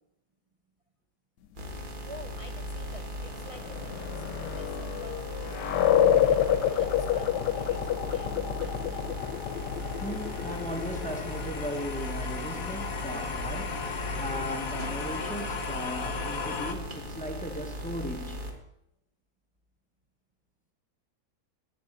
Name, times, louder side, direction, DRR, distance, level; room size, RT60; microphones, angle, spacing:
sound 1, 1.6-18.5, equal, 30° right, 1.6 m, -38 dB
voice 1, 1.8-9.2, right 1 dB, 65° right, 0.3 m, -49 dB
sound 2, 3.1-14.5, left 10 dB, 90° left, 1.4 m, -29 dB
sound 3, 8.4-16.7, left 5 dB, 60° left, 1.4 m, -37 dB
voice 2, 10.0-18.5, equal, 5° left, 0.7 m, -37 dB
10.5 x 6.5 x 9.0 m
omnidirectional pair, 1.8 m